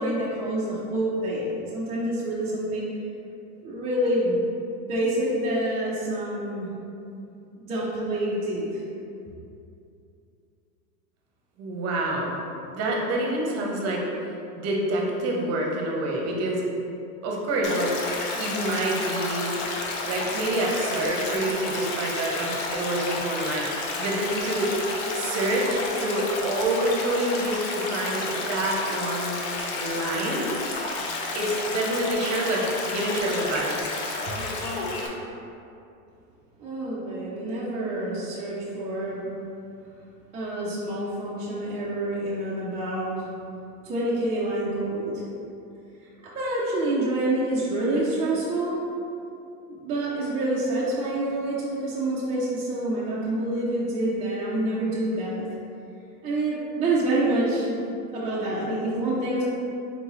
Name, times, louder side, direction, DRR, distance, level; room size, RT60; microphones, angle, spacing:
voice 1, 0.0-2.9 3.6-4.4 4.9-6.7 7.6-8.8 36.6-39.2 40.3-43.1 43.8-45.2 46.3-48.8 49.7-55.5 56.2-57.8 58.1-59.4, right 1 dB, 15° right, -8 dB, 0.4 m, -27 dB
voice 2, 11.6-12.4 12.7-14.0 14.6-16.6 17.2-19.5 20.0-24.8 25.1-29.3 29.8-30.5 31.3-33.9 34.3-34.4, right 1 dB, 35° right, -2 dB, 0.8 m, -27 dB
Stream, 17.6-35.1, left 3 dB, 50° left, 0.7 m, -31 dB
3.9 x 2.9 x 3.7 m, 2.6 s
hypercardioid pair, 120°, 46 cm